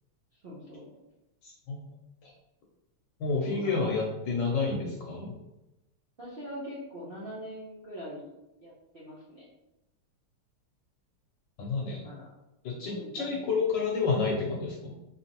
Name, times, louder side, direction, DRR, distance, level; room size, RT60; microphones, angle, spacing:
voice 1, 0.4-0.9 3.4-3.8 6.2-8.3 8.6-9.5 12.0-12.3 12.8-13.4, equal, 85° right, -7 dB, 0.5 m, -42 dB
voice 2, 1.4-1.8 2.2-2.3 3.2-5.4 11.6-12.1 12.6-15.0, left 4 dB, 65° left, -2 dB, 1.3 m, -30 dB
4.2 x 3.7 x 2.9 m, 0.94 s
omnidirectional pair, 2.4 m